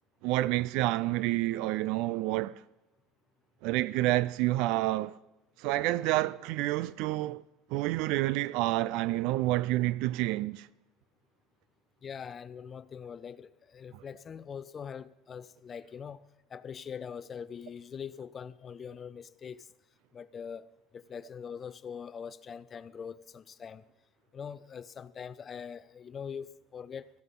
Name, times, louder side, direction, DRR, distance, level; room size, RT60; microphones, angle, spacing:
voice 1, 0.2-2.6 3.6-5.1 5.6-7.4 7.7-10.7 13.9-14.0, right 17 dB, 75° right, 0.4 m, -29 dB
voice 2, 12.0-16.2 16.5-19.7 20.1-23.8 24.3-27.1, left 7 dB, 35° left, 0.5 m, -43 dB
17.0 x 14.0 x 3.8 m
supercardioid pair, 110°, 0 cm